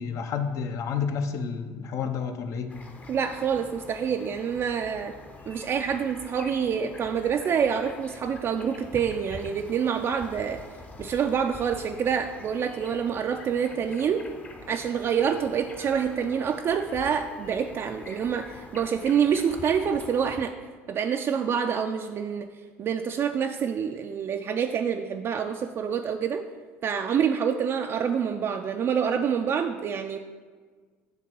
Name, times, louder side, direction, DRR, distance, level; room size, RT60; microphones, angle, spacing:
voice 1, 0.0-2.7, left 6 dB, 55° left, 8 dB, 0.7 m, -30 dB
sound 1, 2.7-20.4, left 3 dB, 25° left, 0.8 m, -45 dB
voice 2, 3.1-5.1 5.5-10.6 11.0-14.3 14.7-20.5 20.9-22.5 22.8-26.4 26.8-30.2, right 7 dB, 40° right, 5 dB, 0.4 m, -27 dB
7.2 x 3.4 x 6.0 m, 1.5 s
hypercardioid pair, 75°, 6 cm